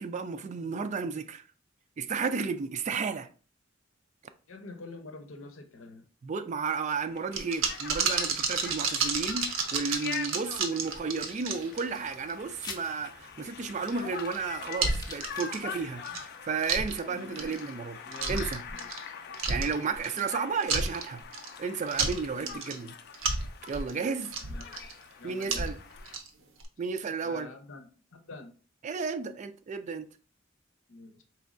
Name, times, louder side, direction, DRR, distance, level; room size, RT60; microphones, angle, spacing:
voice 1, 0.0-1.4 2.0-3.3 6.2-16.0 16.4-18.0 18.3-18.6 19.5-21.2 21.6-22.9 23.6-24.3 25.2-25.8 26.8-27.5 28.8-30.1, right 5 dB, 35° right, 0.3 m, -33 dB
voice 2, 4.5-6.0 16.1-16.2 17.0-17.7 18.0-19.4 19.8-20.3 22.3-22.6 24.3-24.8 25.2-25.9 27.2-28.5 30.9-31.2, left 3 dB, 80° left, 0.7 m, -47 dB
Conversation, 6.7-26.2, left 6 dB, 55° left, 0.4 m, -44 dB
sound 1, 7.3-12.3 12.7-12.8 13.8-14.4 14.6-15.7 16.0-16.2 16.6-17.0 17.4-17.7 18.1-19.0 19.3-20.3 20.6-21.5 21.9-22.8 23.1-24.9 25.4-26.3 26.6-26.7, right 4 dB, 80° right, 0.7 m, -31 dB
sound 2, 10.2-16.3, left 3 dB, 20° left, 0.7 m, -50 dB
4.4 x 3.0 x 2.5 m
head